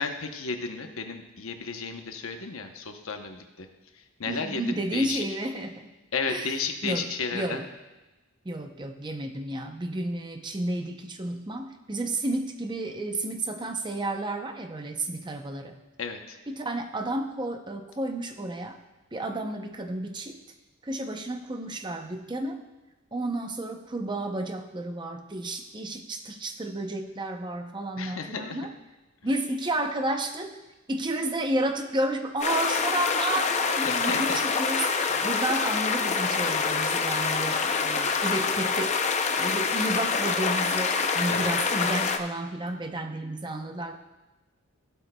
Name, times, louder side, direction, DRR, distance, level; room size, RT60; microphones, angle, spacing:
voice 1, 0.0-3.7 3.9-5.2 6.1-7.6 16.0-16.4 28.0-28.6 33.9-34.4 35.1-35.3 41.3-41.5, left 4 dB, 70° left, 5 dB, 0.8 m, -33 dB
voice 2, 4.3-5.9 6.3-6.5 6.8-7.1 7.3-7.6 8.4-15.8 16.5-18.8 19.1-20.4 20.8-22.6 23.1-28.7 29.2-30.6 30.9-34.9 35.2-38.9 39.4-44.0, right 1 dB, 20° right, 5 dB, 0.6 m, -31 dB
sound 1, 32.4-42.2, left 5 dB, 30° left, 0.5 m, -26 dB
15.5 x 8.2 x 2.2 m, 1.1 s
head